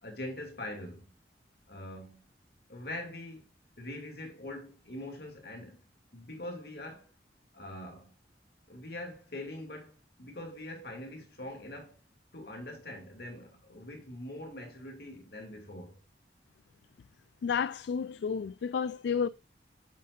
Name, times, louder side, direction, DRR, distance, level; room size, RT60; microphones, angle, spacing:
voice 1, 0.0-1.1 1.7-2.2 2.7-3.4 3.8-5.8 6.1-7.1 7.5-8.1 8.7-12.0 12.3-16.0, left 1 dB, 60° left, 2.7 m, -43 dB
voice 2, 17.4-19.3, left 6 dB, 75° left, 0.3 m, -31 dB
8.4 x 7.4 x 2.5 m
head